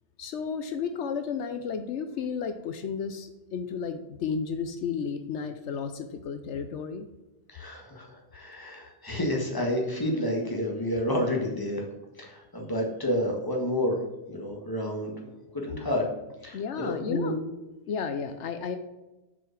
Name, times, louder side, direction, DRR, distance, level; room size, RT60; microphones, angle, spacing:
voice 1, 0.2-7.1 16.5-17.4 17.9-18.8, left 6 dB, 80° left, 8 dB, 1.0 m, -33 dB
voice 2, 7.5-11.9 12.2-15.1 15.5-16.0 16.4-17.4, left 1 dB, 20° left, 0 dB, 1.6 m, -30 dB
6.8 x 5.2 x 5.9 m, 1.0 s
omnidirectional pair, 1.2 m